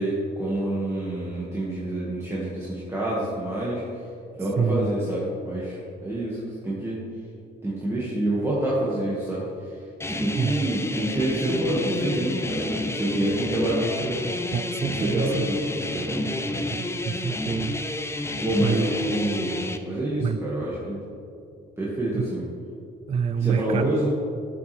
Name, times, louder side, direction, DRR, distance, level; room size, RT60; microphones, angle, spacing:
voice 1, 0.0-3.9 4.4-7.0 7.6-9.5 10.1-14.2 14.8-16.6 18.4-21.0 21.8-22.5 23.4-24.1, right 1 dB, 15° right, -7 dB, 1.8 m, -27 dB
voice 2, 4.6-4.9 10.4-10.7 14.5-15.5 16.7-17.8 18.6-18.9 20.2-20.4 22.1-22.2 23.1-23.9, right 6 dB, 30° right, 10 dB, 0.4 m, -26 dB
sound 1, 10.0-19.8, left 1 dB, 15° left, 0.6 m, -30 dB
13.0 x 7.2 x 3.4 m, 2.5 s
cardioid pair, 90°, 20 cm